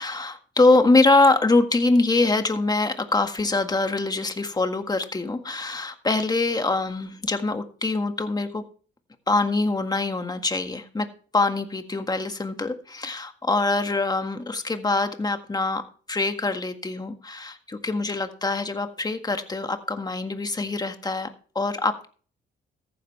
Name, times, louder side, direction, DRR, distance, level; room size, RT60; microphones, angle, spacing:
voice 1, 0.0-8.6 9.3-11.1 11.3-21.3 21.5-22.1, left 3 dB, 20° left, 7 dB, 1.7 m, -24 dB
14.0 x 10.5 x 3.3 m, 0.41 s
cardioid pair, 90°, 20 cm